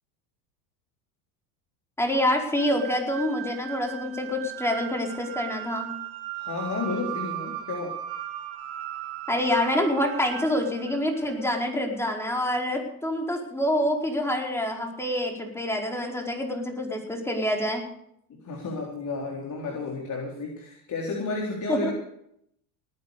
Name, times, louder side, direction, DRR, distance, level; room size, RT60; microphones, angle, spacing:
voice 1, 2.0-5.9 9.3-17.8 21.7-21.9, left 1 dB, 5° left, 1 dB, 4.8 m, -26 dB
sound 1, 2.6-11.7, right 13 dB, 60° right, 4.2 m, -37 dB
voice 2, 6.3-8.0 18.3-21.9, left 3 dB, 40° left, 0 dB, 4.2 m, -32 dB
19.0 x 9.7 x 6.8 m, 0.72 s
hypercardioid pair, 90°, 47 cm